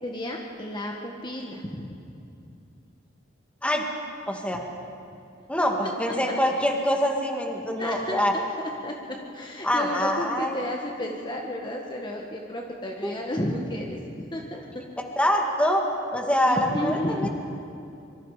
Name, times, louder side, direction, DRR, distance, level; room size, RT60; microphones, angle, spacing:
voice 1, 0.0-2.0 4.5-4.7 5.1-5.2 7.8-14.0 14.3-14.6 16.5-17.3, left 1 dB, 25° left, 0 dB, 1.6 m, -32 dB
voice 2, 4.3-4.6 5.5-8.3 9.6-10.5 13.0-13.2 15.2-15.8 16.1-17.3, equal, 5° left, 1 dB, 2.0 m, -24 dB
25.0 x 24.0 x 5.0 m, 2.7 s
head